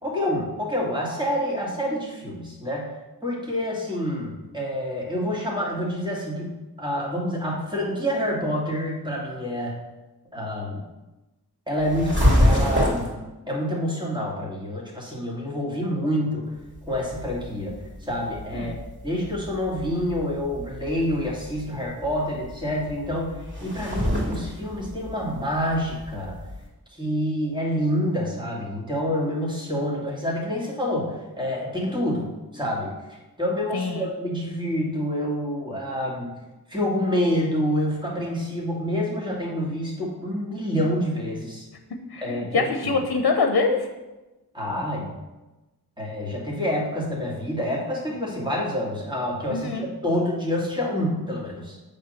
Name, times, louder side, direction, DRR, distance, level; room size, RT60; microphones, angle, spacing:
voice 1, 0.0-2.9 3.2-9.7 10.3-10.8 11.7-16.5 16.9-17.7 18.0-18.8 19.0-26.3 26.9-32.3 32.5-36.3 36.7-41.7 42.2-42.9 44.5-45.2 46.0-51.8, equal, 10° right, -4 dB, 2.3 m, -27 dB
sound 1, 11.8-13.1 16.6-26.7, left 1 dB, 30° right, 3.0 m, -27 dB
voice 2, 33.7-34.1 42.1-43.9 49.5-49.9, left 4 dB, 75° left, 5 dB, 0.8 m, -24 dB
8.3 x 3.7 x 6.5 m, 1.1 s
wide cardioid pair, 70°, 38 cm